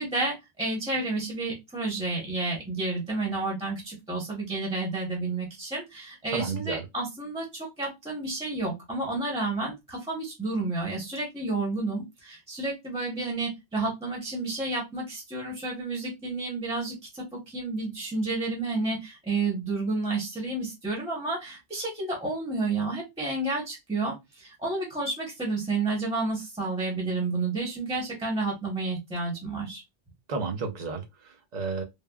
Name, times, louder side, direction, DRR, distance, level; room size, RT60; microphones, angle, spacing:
voice 1, 0.0-29.8, right 3 dB, 5° right, 0.7 m, -31 dB
voice 2, 6.3-6.9 30.3-31.8, right 4 dB, 50° right, 0.5 m, -32 dB
3.3 x 2.1 x 2.2 m
omnidirectional pair, 1.2 m